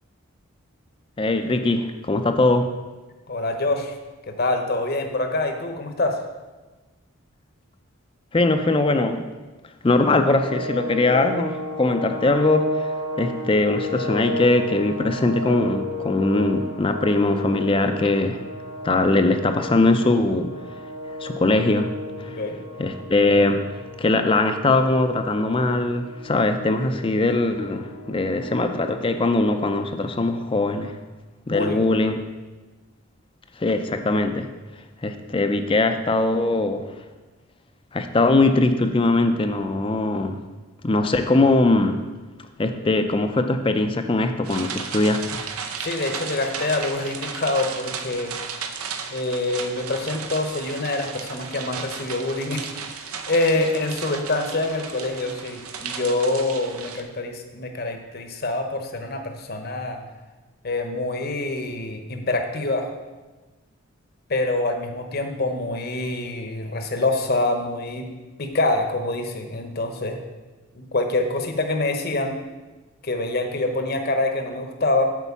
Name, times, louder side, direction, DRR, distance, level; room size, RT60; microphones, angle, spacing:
voice 1, 1.2-2.7 8.3-9.2 9.8-12.9 13.2-18.4 18.8-20.5 21.2-21.9 22.2-22.4 22.8-23.6 24.0-30.9 31.5-32.2 33.6-34.5 35.0-36.8 37.9-40.4 40.8-42.0 42.6-45.2, left 2 dB, 25° left, 7 dB, 0.4 m, -21 dB
voice 2, 3.3-4.0 4.3-6.2 22.2-22.6 31.5-31.8 45.8-48.4 49.1-52.7 53.0-60.0 60.6-62.9 64.3-68.1 68.4-70.2 70.7-72.4 73.0-75.1, left 2 dB, 45° left, 5 dB, 0.8 m, -25 dB
sound 1, 10.4-29.8, left 2 dB, 80° left, 1.4 m, -34 dB
sound 2, 44.4-57.0, right 6 dB, 90° right, 0.7 m, -34 dB
8.3 x 4.5 x 7.1 m, 1.2 s
head